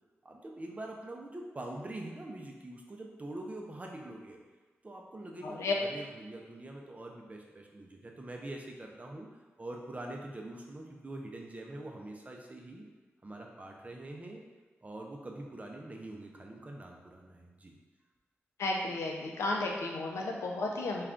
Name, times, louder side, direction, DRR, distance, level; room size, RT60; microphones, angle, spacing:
voice 1, 0.2-4.4 4.8-9.3 9.6-12.8 13.2-14.4 14.8-17.7, right 1 dB, 30° right, 0 dB, 0.5 m, -44 dB
voice 2, 5.4-5.7 18.6-21.0, left 2 dB, 90° left, 0 dB, 0.4 m, -33 dB
2.3 x 2.2 x 3.7 m, 1.3 s
cardioid pair, 65°, 5 cm